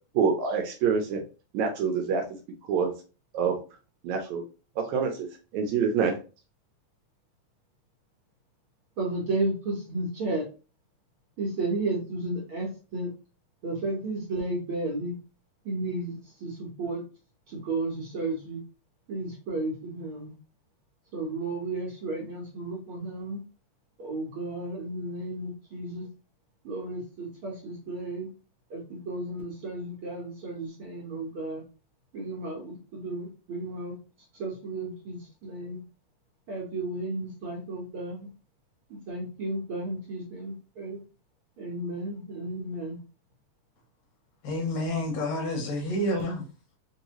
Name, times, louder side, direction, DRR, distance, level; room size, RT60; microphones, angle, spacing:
voice 1, 0.2-1.2 1.5-2.2 2.7-2.9 3.3-3.6 4.0-4.4 4.8-5.3 5.5-6.1, right 6 dB, 75° right, 1.9 m, -26 dB
voice 2, 9.0-10.5 11.4-13.1 13.6-15.2 15.6-17.0 17.5-18.6 19.1-20.3 21.1-23.4 24.0-26.1 26.6-28.3 28.7-31.6 32.1-34.0 34.3-35.8 36.5-38.3 38.9-41.0 41.6-43.0, right 2 dB, 60° right, 1.6 m, -33 dB
voice 3, 44.4-46.4, left 1 dB, 70° left, 1.9 m, -29 dB
4.6 x 2.7 x 2.9 m
omnidirectional pair, 3.6 m